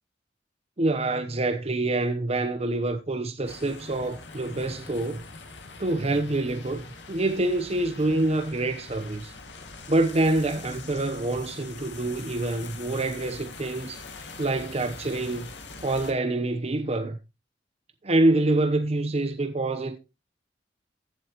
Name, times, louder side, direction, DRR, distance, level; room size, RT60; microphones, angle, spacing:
voice 1, 0.8-5.2 5.8-9.3 9.9-15.5 15.8-17.2 18.0-20.0, right 2 dB, 35° right, 0.9 m, -26 dB
sound 1, 3.5-16.1, left 3 dB, 85° left, 2.2 m, -43 dB
15.0 x 7.9 x 3.0 m
head